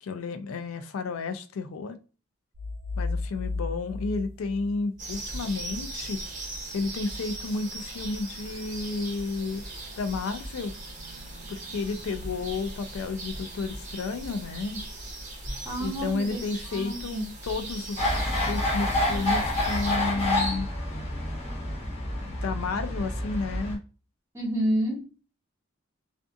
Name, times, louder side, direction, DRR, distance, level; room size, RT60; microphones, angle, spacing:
voice 1, 0.0-2.0 3.0-6.2 6.7-9.6 10.0-10.7 11.5-14.8 15.8-20.7 22.3-23.8, left 3 dB, 85° left, 0.4 m, -32 dB
sound 1, 2.5-5.2, left 3 dB, 75° right, 0.7 m, -34 dB
sound 2, 5.0-20.0, right 2 dB, 35° right, 0.8 m, -39 dB
voice 2, 15.6-16.4 16.7-17.2 24.3-25.1, right 1 dB, 15° right, 1.0 m, -29 dB
sound 3, 18.0-23.7, left 1 dB, 30° left, 0.8 m, -28 dB
2.5 x 2.3 x 2.5 m
head